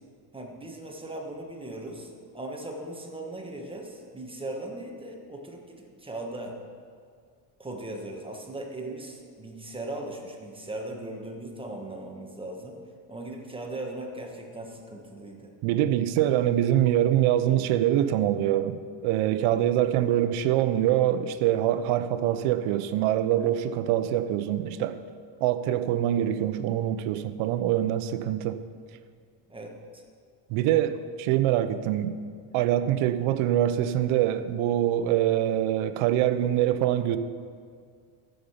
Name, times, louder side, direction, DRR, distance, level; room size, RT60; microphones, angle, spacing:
voice 1, 0.3-6.6 7.6-12.8 13.1-15.5 29.5-30.0, right 1 dB, 10° right, 1 dB, 1.3 m, -38 dB
voice 2, 15.6-25.0 25.4-28.6 30.5-32.2 32.5-37.2, right 12 dB, 75° right, 11 dB, 0.9 m, -24 dB
14.5 x 6.8 x 5.7 m, 2.1 s
cardioid pair, 130°, 49 cm